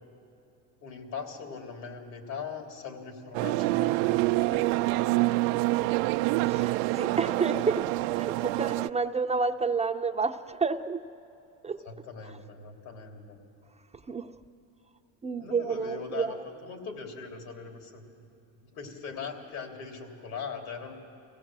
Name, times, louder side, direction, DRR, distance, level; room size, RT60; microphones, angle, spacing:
voice 1, 0.8-4.9 5.3-5.6 11.8-13.4 15.4-16.4 16.6-18.0 18.6-20.9, left 5 dB, 75° left, 3 dB, 3.4 m, -41 dB
sound 1, 3.3-8.9, right 19 dB, 85° right, 0.5 m, -26 dB
voice 2, 6.4-11.0 11.6-11.8 14.1-14.4 15.2-16.3, right 4 dB, 15° right, 5 dB, 0.6 m, -30 dB
24.0 x 17.0 x 7.5 m, 2.9 s
supercardioid pair, 110°, 38 cm